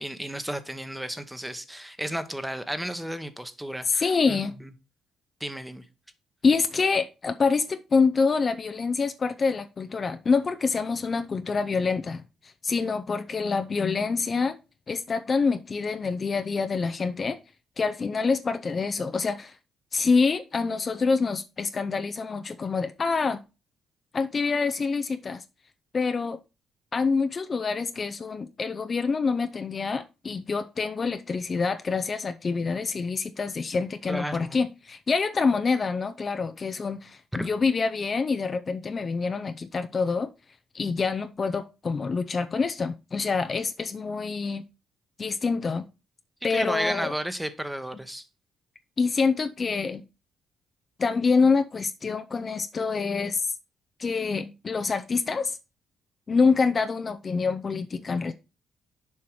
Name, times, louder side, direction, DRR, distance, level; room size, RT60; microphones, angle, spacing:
voice 1, 0.0-4.7 5.4-5.8 34.1-34.6 37.3-37.5 46.5-48.2, equal, 5° right, 1.0 m, -33 dB
voice 2, 3.8-4.5 6.4-14.6 14.9-17.4 17.8-19.6 19.9-23.4 24.1-25.4 25.9-26.4 26.9-40.3 40.7-44.6 45.2-45.9 46.4-47.1 49.0-50.0 51.0-53.4 54.0-55.6 56.3-58.3, left 4 dB, 40° left, 0.5 m, -26 dB
7.1 x 4.6 x 4.6 m
cardioid pair, 90°, 0 cm